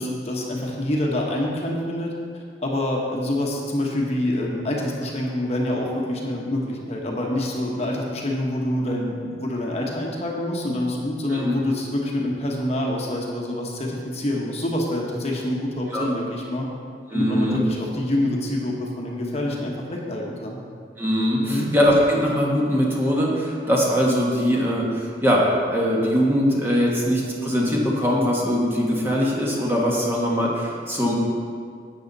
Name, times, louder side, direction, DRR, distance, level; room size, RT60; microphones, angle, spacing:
voice 1, 0.0-16.7 17.1-20.6 21.5-21.7, left 1 dB, 35° left, -1 dB, 1.2 m, -26 dB
voice 2, 17.1-17.6 21.0-25.4 25.7-31.1, equal, 15° right, -4 dB, 1.4 m, -21 dB
11.5 x 8.5 x 4.0 m, 2.2 s
head